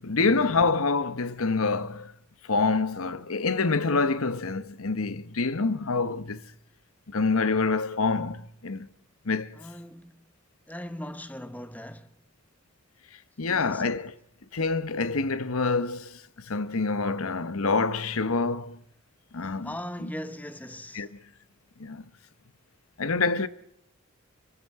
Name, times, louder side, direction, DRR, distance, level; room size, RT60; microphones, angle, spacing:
voice 1, 0.0-2.1 2.5-6.4 7.1-8.9 9.2-9.5 13.4-14.1 14.5-16.2 16.5-18.8 19.3-19.7 20.9-21.1 21.8-22.0 23.0-23.5, left 4 dB, 85° left, 1.0 m, -26 dB
voice 2, 9.5-10.2 10.7-12.1 13.5-14.0 19.6-21.1, equal, 5° left, 0.9 m, -39 dB
25.5 x 22.5 x 4.8 m
head